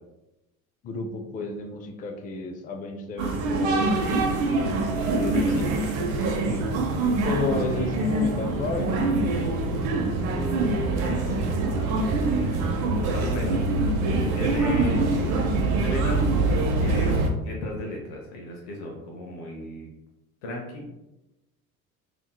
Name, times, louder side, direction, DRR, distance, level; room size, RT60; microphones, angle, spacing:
voice 1, 0.8-3.9 5.0-5.7 7.2-9.6 11.2-11.5, left 3 dB, 20° left, 3 dB, 0.4 m, -33 dB
sound 1, 3.2-17.3, right 2 dB, 70° right, 0.7 m, -24 dB
voice 2, 5.2-5.6 6.4-6.6 10.3-11.2 13.1-13.6 14.1-15.1 15.7-16.3 16.8-17.2 17.4-19.9 20.4-20.8, left 1 dB, 70° left, -1 dB, 0.8 m, -34 dB
3.5 x 2.9 x 2.2 m, 0.96 s
hypercardioid pair, 60°, 44 cm